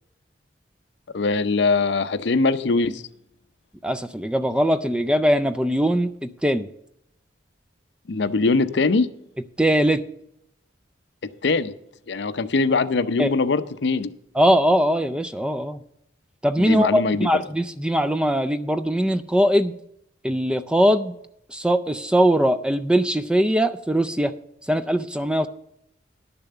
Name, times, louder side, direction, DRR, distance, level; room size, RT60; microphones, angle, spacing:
voice 1, 1.1-3.0 8.1-9.1 11.4-11.7 12.1-14.1 16.6-17.3, left 3 dB, 65° left, 13 dB, 0.6 m, -22 dB
voice 2, 3.8-6.7 9.6-10.0 13.2-13.3 14.3-15.8 16.4-19.7 20.2-21.2 21.5-24.3 24.7-25.5, equal, 5° right, 11 dB, 0.4 m, -21 dB
11.0 x 7.0 x 6.8 m, 0.77 s
head